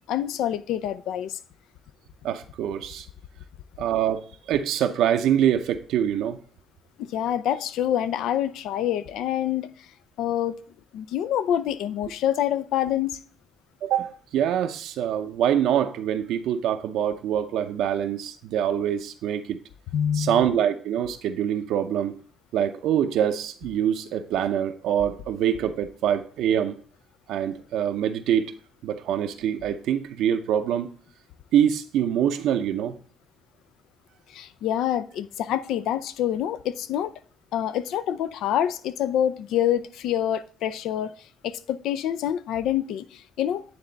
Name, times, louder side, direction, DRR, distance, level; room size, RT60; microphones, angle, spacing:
voice 1, 0.1-1.4 7.0-9.7 10.2-10.5 10.9-13.2 19.9-20.5 34.3-37.1 37.5-41.1 41.4-43.6, left 10 dB, 85° left, 0.4 m, -26 dB
voice 2, 2.2-3.1 3.8-6.4 13.8-19.6 20.1-22.2 22.5-26.7 27.3-28.5 28.8-30.9 31.5-33.0, right 9 dB, 85° right, 0.6 m, -25 dB
9.5 x 3.4 x 3.9 m
cardioid pair, 90°, 0 cm